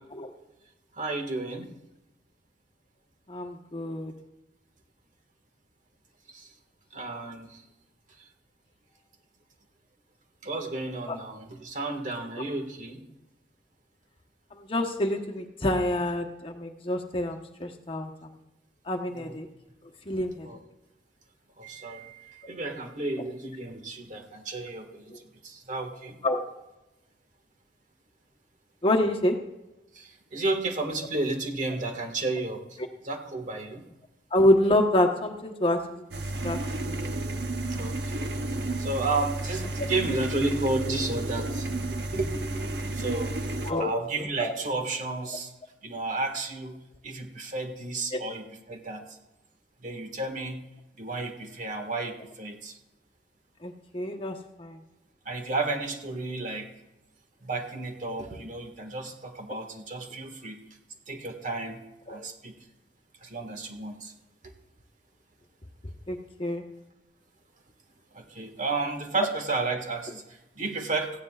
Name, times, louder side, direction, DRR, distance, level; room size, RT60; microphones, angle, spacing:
voice 1, 1.0-1.7 6.3-6.5 6.9-7.6 10.4-13.0 19.1-19.4 20.4-20.6 21.6-25.0 25.4-26.2 29.9-32.6 33.0-33.9 37.7-38.4 38.8-43.3 43.8-45.5 45.8-46.8 47.0-49.0 49.8-50.6 51.0-52.7 55.2-56.7 57.4-60.6 61.1-61.8 62.1-62.5 63.2-64.1 64.4-64.5 68.1-71.1, right 3 dB, 45° right, 4 dB, 1.7 m, -32 dB
voice 2, 3.3-4.1 11.1-11.2 14.7-18.1 18.9-19.5 20.1-20.5 26.2-26.4 28.8-29.4 34.3-36.1 36.4-36.6 36.8-37.1 43.7-43.9 44.4-44.5 48.1-48.2 53.6-54.8 62.1-62.2 66.1-66.6, left 1 dB, 30° left, 2 dB, 1.1 m, -27 dB
sound 1, 36.1-43.7, right 2 dB, 70° right, 1.0 m, -32 dB
17.5 x 15.5 x 2.4 m, 0.97 s
head